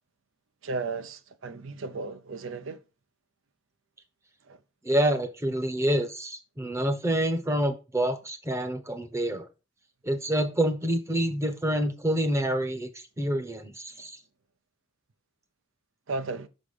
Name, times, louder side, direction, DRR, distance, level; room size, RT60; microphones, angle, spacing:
voice 1, 0.6-2.8 4.5-4.6 16.1-16.5, right 3 dB, 75° right, 0.6 m, -34 dB
voice 2, 4.8-9.5 10.0-12.9 13.2-14.1, right 1 dB, 15° right, 0.8 m, -27 dB
6.0 x 4.1 x 4.9 m
head